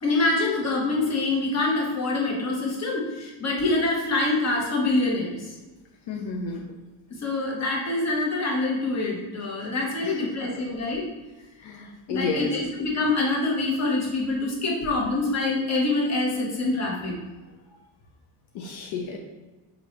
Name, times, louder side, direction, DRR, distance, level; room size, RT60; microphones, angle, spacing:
voice 1, 0.0-5.6 7.2-11.1 12.1-17.2, left 2 dB, 35° left, -2 dB, 1.1 m, -25 dB
voice 2, 6.1-6.6 10.0-10.3 11.6-12.5 18.5-19.2, left 4 dB, 70° left, 1 dB, 0.7 m, -31 dB
3.7 x 3.0 x 3.1 m, 1.2 s
cardioid pair, 105°, 48 cm